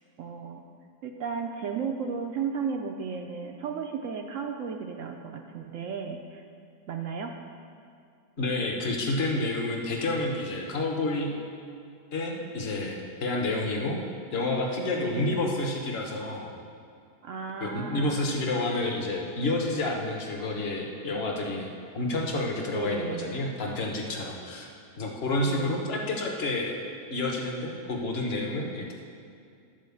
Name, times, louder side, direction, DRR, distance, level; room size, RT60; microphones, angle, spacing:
voice 1, 0.2-0.6 1.0-6.4 6.9-7.3 15.0-15.4 17.2-18.4 22.7-23.5 25.5-25.9, right 6 dB, 70° right, 3 dB, 0.7 m, -34 dB
voice 2, 8.4-11.3 12.1-14.0 14.3-16.5 17.6-24.7 25.0-26.7 27.1-28.9, left 2 dB, 40° left, 0 dB, 1.2 m, -29 dB
10.5 x 4.3 x 7.0 m, 2.3 s
omnidirectional pair, 1.8 m